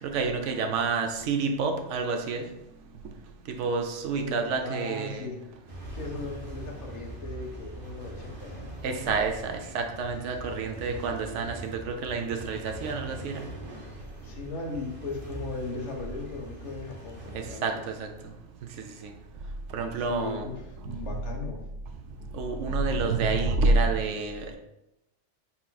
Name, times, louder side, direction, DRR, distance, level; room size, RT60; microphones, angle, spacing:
voice 1, 0.0-2.4 3.6-5.3 8.8-13.4 17.3-18.1 19.0-19.1 19.7-20.5 20.9-21.0 22.3-24.6, right 4 dB, 90° right, 4 dB, 0.9 m, -28 dB
voice 2, 4.1-5.4 5.9-9.2 14.2-17.8 20.1-21.6, left 3 dB, 75° left, 2 dB, 1.1 m, -38 dB
sound 1, 5.7-17.5, right 1 dB, 50° right, 1.1 m, -42 dB
4.3 x 4.2 x 2.2 m, 0.89 s
omnidirectional pair, 1.2 m